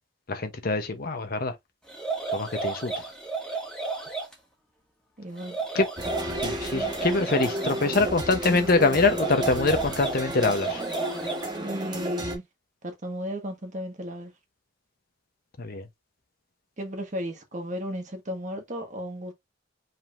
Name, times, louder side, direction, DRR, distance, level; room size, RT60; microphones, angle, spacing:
voice 1, 0.3-1.5 2.3-2.9 5.7-5.9 6.4-10.8 15.6-15.8, left 3 dB, 50° left, 0.9 m, -24 dB
sound 1, 1.9-4.3 5.4-7.8 9.0-11.6, right 3 dB, 5° left, 1.4 m, -32 dB
voice 2, 5.2-5.6 11.6-12.4 12.8-14.3 16.8-19.3, equal, 40° right, 1.4 m, -34 dB
sound 2, 6.0-12.4, right 1 dB, 20° right, 1.4 m, -32 dB
5.3 x 3.5 x 2.5 m
head